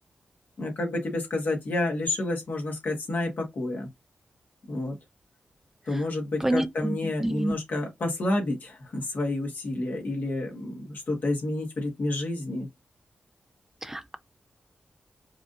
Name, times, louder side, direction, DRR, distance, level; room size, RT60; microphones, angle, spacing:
voice 1, 0.6-3.9 4.7-4.9 5.9-12.7, left 2 dB, 70° left, 1.6 m, -29 dB
voice 2, 6.4-6.9 7.2-7.5 13.8-14.2, right 1 dB, 10° right, 0.5 m, -27 dB
4.8 x 2.5 x 2.6 m
cardioid pair, 60°, 3 cm